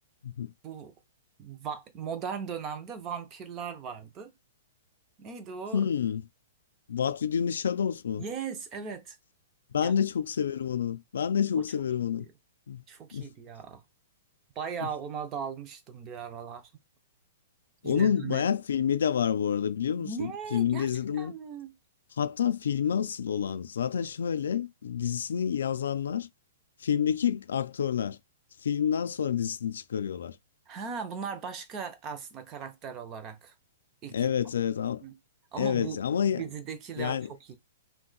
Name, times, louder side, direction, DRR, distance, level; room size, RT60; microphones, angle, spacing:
voice 1, 0.6-0.9 1.4-4.3 5.2-5.9 8.2-9.2 9.8-9.9 11.5-11.7 12.2-12.3 12.9-13.8 14.6-16.7 17.8-18.5 20.0-21.7 30.7-33.5 34.0-34.3 35.0-35.1 35.5-37.6, right 6 dB, 15° right, 0.4 m, -38 dB
voice 2, 5.7-6.2 6.9-8.2 9.7-12.3 12.7-12.8 13.1-13.3 17.8-21.3 22.2-26.3 26.8-28.2 28.6-30.4 34.1-35.0 35.6-36.4 37.0-37.3, left 8 dB, 85° left, 0.4 m, -28 dB
2.7 x 2.1 x 3.8 m
hypercardioid pair, 180°, 0 cm